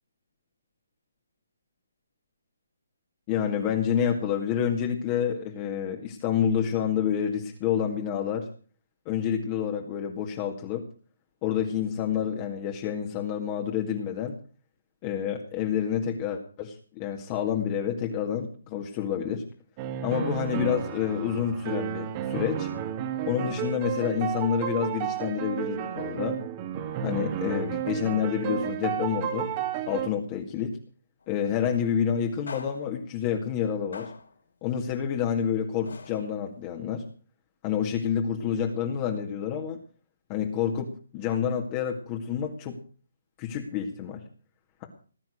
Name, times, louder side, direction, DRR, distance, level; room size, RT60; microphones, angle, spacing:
voice 1, 3.3-8.5 9.1-10.9 11.4-14.4 15.0-19.5 20.0-22.7 23.2-26.4 27.0-29.5 29.9-30.8 31.3-34.1 34.6-37.0 37.6-39.8 40.3-42.8 43.4-44.2, left 8 dB, 25° left, 2 dB, 2.1 m, -28 dB
sound 1, 19.8-30.1, right 10 dB, 25° right, 2.0 m, -32 dB
sound 2, 31.2-31.4 32.5-33.1 33.9-34.5 35.8-36.6, left 4 dB, 75° left, 4.8 m, -44 dB
19.0 x 9.3 x 6.5 m, 0.41 s
hypercardioid pair, 155°, 0 cm